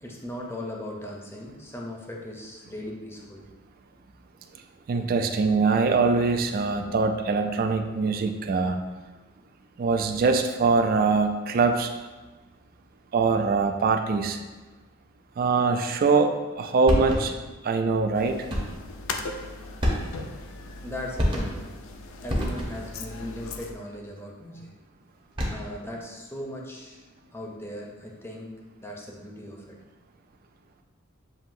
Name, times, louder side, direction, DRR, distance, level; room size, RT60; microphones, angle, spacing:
voice 1, 0.0-3.4 20.8-21.7 22.2-24.7 25.5-27.0 27.3-28.5 28.8-29.8, left 1 dB, 10° left, -1 dB, 0.6 m, -38 dB
voice 2, 4.9-8.8 9.8-11.9 13.1-14.4 15.4-17.3 17.6-18.5, right 4 dB, 45° right, 6 dB, 0.4 m, -23 dB
sound 1, 16.9-17.5 18.5-18.9 19.8-20.4 21.2-21.8 22.3-23.0 25.2-25.8, equal, 25° right, 0.8 m, -28 dB
sound 2, 18.2-23.7, left 3 dB, 70° left, 0.4 m, -39 dB
7.3 x 2.7 x 2.6 m, 1.2 s
head